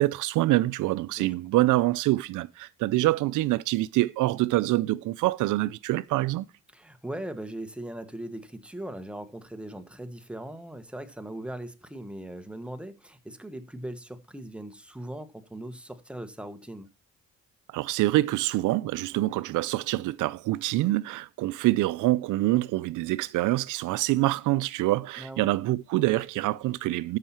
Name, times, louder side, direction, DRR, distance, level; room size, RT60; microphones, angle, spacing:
voice 1, 0.0-6.5 17.7-27.2, right 17 dB, 80° right, 0.5 m, -25 dB
voice 2, 6.7-16.9 25.2-25.5, right 1 dB, 5° right, 1.3 m, -39 dB
13.0 x 5.7 x 4.3 m
cardioid pair, 90°, 30 cm